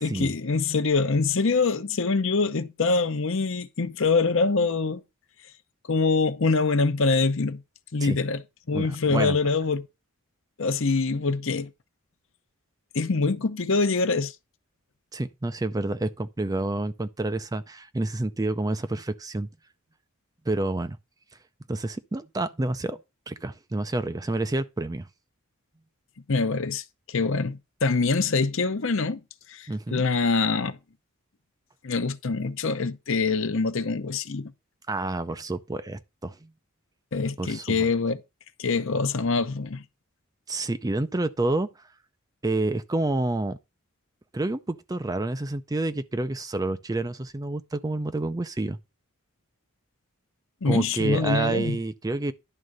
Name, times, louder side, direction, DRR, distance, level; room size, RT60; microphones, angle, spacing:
voice 1, 0.0-5.0 5.9-7.6 7.9-8.4 8.7-9.9 10.6-11.7 12.9-14.3 26.3-29.2 29.5-30.8 31.8-34.5 37.1-38.2 38.6-39.8 50.6-51.8, left 4 dB, 60° left, 0.8 m, -24 dB
voice 2, 8.7-9.4 15.1-19.5 20.5-21.0 21.7-23.0 23.3-25.1 29.7-30.0 34.9-36.5 37.4-37.9 40.5-41.7 42.4-43.6 44.3-48.8 50.6-52.3, right 2 dB, 15° right, 0.4 m, -28 dB
11.0 x 3.7 x 6.5 m
head